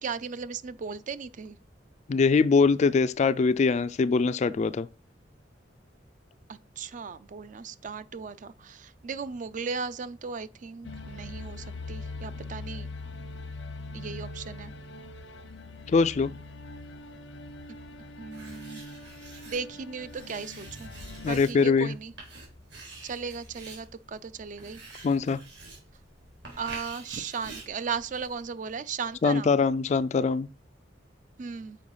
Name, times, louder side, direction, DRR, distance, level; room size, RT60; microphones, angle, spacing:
voice 1, 0.0-1.6 6.5-12.9 13.9-14.7 18.2-18.8 19.5-20.9 21.3-22.1 23.0-24.8 26.6-29.6 31.4-31.8, right 5 dB, 45° right, 0.4 m, -36 dB
voice 2, 2.1-4.9 15.9-16.3 21.2-21.9 25.0-25.4 29.2-30.5, left 4 dB, 40° left, 0.3 m, -23 dB
sound 1, 10.8-21.4, left 2 dB, 85° left, 0.9 m, -42 dB
Writing, 18.3-28.5, right 3 dB, 70° right, 3.3 m, -48 dB
6.4 x 4.6 x 5.5 m
head